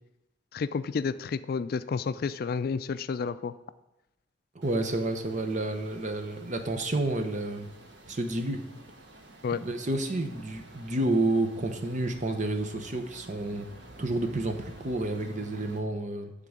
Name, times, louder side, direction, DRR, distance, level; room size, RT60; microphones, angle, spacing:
voice 1, 0.5-3.5 9.4-9.6, left 5 dB, 55° left, 14 dB, 0.3 m, -30 dB
voice 2, 4.5-7.7 8.1-8.6 9.5-13.7 14.0-16.3, right 2 dB, 45° right, 6 dB, 0.9 m, -30 dB
sound 1, 4.6-15.8, right 2 dB, 75° right, 1.3 m, -50 dB
10.0 x 3.8 x 7.2 m, 0.96 s
head